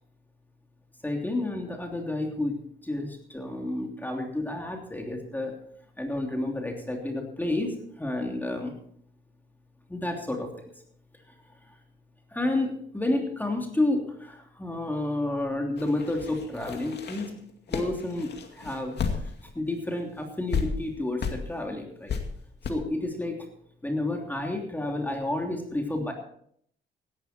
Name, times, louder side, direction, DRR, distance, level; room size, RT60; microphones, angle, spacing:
voice 1, 1.0-5.6 6.0-8.7 9.9-10.5 12.3-17.4 17.7-19.0 19.2-22.2 22.7-23.5 23.8-26.1, left 2 dB, 10° left, 2 dB, 3.1 m, -30 dB
sound 1, 15.8-19.6 19.9-20.0 20.5-20.6 21.2-21.4 22.1-22.2 22.6-22.7, left 6 dB, 55° left, 2.3 m, -32 dB
16.0 x 12.0 x 4.5 m, 0.66 s
cardioid pair, 90°, 20 cm